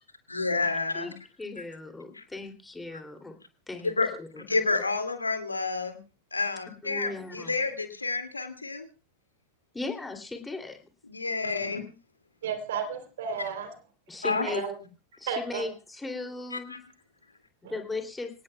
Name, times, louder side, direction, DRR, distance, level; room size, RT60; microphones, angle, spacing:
voice 1, 0.3-1.1 2.1-2.2 3.8-4.1 4.5-6.0 6.3-8.9 11.1-11.8 14.2-14.5 16.5-16.8, left 3 dB, 80° left, 7 dB, 2.3 m, -29 dB
voice 2, 1.4-3.3 3.7-3.9 4.2-4.4 6.8-7.5 9.7-10.8 14.1-14.6 15.2-16.8 17.7-18.3, left 3 dB, 10° left, 5 dB, 2.8 m, -37 dB
voice 3, 12.4-13.7 14.4-14.7 15.3-15.6 17.6-17.7, right 6 dB, 60° right, 7 dB, 3.3 m, -33 dB
27.0 x 18.0 x 2.3 m, 0.34 s
figure-of-eight pair, 90°, 0 cm